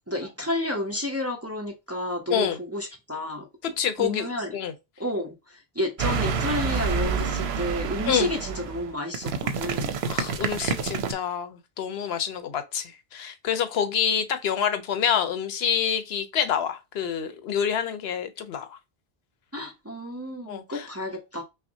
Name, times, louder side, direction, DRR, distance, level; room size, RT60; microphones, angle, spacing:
voice 1, 0.1-4.6 5.0-5.3 5.8-10.0 19.5-21.4, left 1 dB, 20° right, 0.6 m, -31 dB
voice 2, 3.8-4.7 8.1-8.3 10.1-18.8 20.5-20.9, left 8 dB, 80° left, 0.9 m, -27 dB
sound 1, 6.0-11.1, right 5 dB, 85° right, 0.8 m, -28 dB
5.7 x 2.1 x 2.7 m
omnidirectional pair, 1.1 m